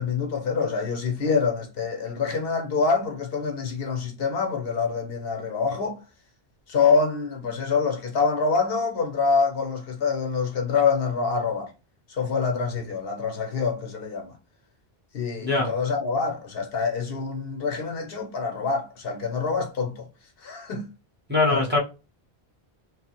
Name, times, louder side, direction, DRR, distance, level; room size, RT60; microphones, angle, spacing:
voice 1, 0.0-6.0 6.7-11.7 12.1-14.4 15.1-20.1 20.4-20.9 21.5-21.7, left 5 dB, 70° left, 0.9 m, -26 dB
voice 2, 21.3-21.8, left 3 dB, 10° right, 0.9 m, -22 dB
3.2 x 2.0 x 2.9 m
omnidirectional pair, 1.1 m